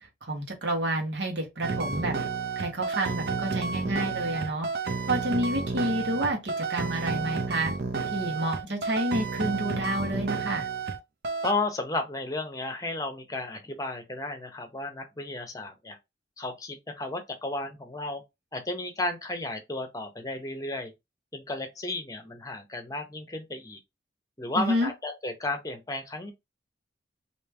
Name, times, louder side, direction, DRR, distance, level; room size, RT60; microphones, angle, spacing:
voice 1, 0.2-2.2 2.5-4.7 5.1-7.7 8.1-10.7 24.6-24.9, right 1 dB, 75° right, 1.4 m, -29 dB
sound 1, 1.6-11.0 11.2-11.5, right 4 dB, 60° right, 0.6 m, -31 dB
voice 2, 11.4-16.0 16.4-18.2 18.5-20.9 21.3-23.8 24.4-26.3, left 2 dB, 20° left, 0.8 m, -33 dB
3.2 x 2.9 x 3.3 m
head